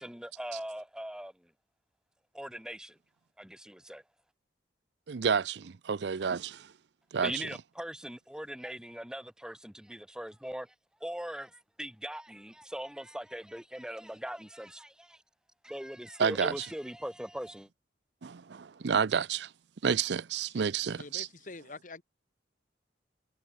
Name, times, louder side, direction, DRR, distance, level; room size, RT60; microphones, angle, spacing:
voice 1, 0.0-1.3 2.3-3.0 3.4-4.0 7.2-10.7 11.0-15.2 15.6-17.7, equal, 5° right, 1.0 m, -40 dB
voice 2, 5.1-6.7 7.1-7.4 16.2-16.7 18.2-19.5 19.8-21.3, right 6 dB, 70° right, 0.5 m, -30 dB
voice 3, 20.5-22.0, left 3 dB, 45° left, 1.7 m, -47 dB
head